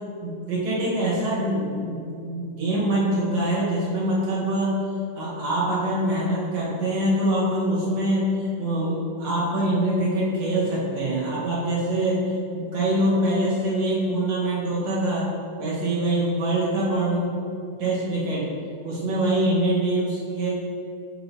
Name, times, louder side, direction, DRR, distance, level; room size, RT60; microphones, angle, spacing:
voice 1, 0.2-4.8 5.1-15.3 15.6-17.4 17.8-18.5 18.8-20.5, right 1 dB, 60° right, -7 dB, 2.6 m, -24 dB
6.4 x 6.4 x 2.9 m, 2.5 s
omnidirectional pair, 3.6 m